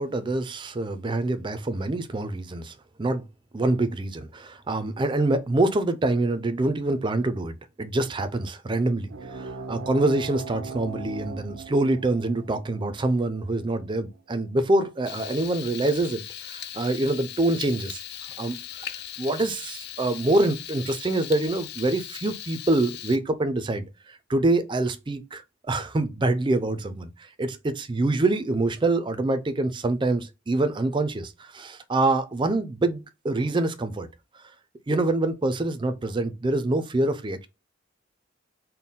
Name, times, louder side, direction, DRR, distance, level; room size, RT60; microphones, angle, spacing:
voice 1, 0.0-2.7 3.0-3.2 3.5-18.0 18.4-18.9 19.2-23.9 24.3-27.1 27.4-34.1 34.9-37.5, right 2 dB, 25° right, 0.4 m, -25 dB
sound 1, 9.1-14.2, right 4 dB, 90° right, 0.6 m, -40 dB
Frying (food), 15.0-23.2, left 11 dB, 55° left, 0.4 m, -39 dB
4.1 x 2.1 x 3.6 m
head